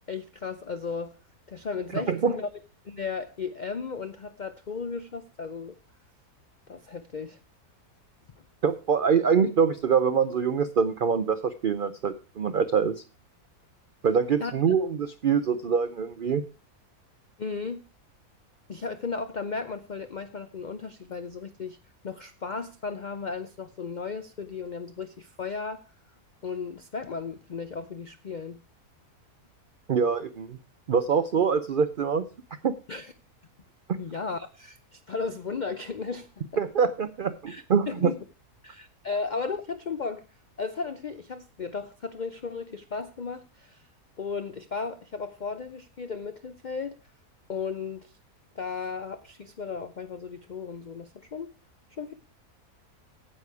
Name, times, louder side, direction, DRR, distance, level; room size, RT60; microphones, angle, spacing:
voice 1, 0.1-1.2 1.5-2.5 2.8-5.8 6.7-7.4 14.4-14.5 17.4-17.8 18.7-21.8 22.0-25.8 26.4-28.6 32.9-33.1 34.0-36.3 37.5-38.2 38.6-40.2 40.6-43.8 44.2-47.0 47.5-48.1 48.6-51.5 52.0-52.1, left 5 dB, 70° left, 0.4 m, -35 dB
voice 2, 1.9-2.3 8.6-13.0 14.0-16.4 29.9-30.6 30.9-32.2 32.6-32.7 36.6-38.1, right 6 dB, 80° right, 0.4 m, -24 dB
9.8 x 8.3 x 4.7 m
omnidirectional pair, 1.6 m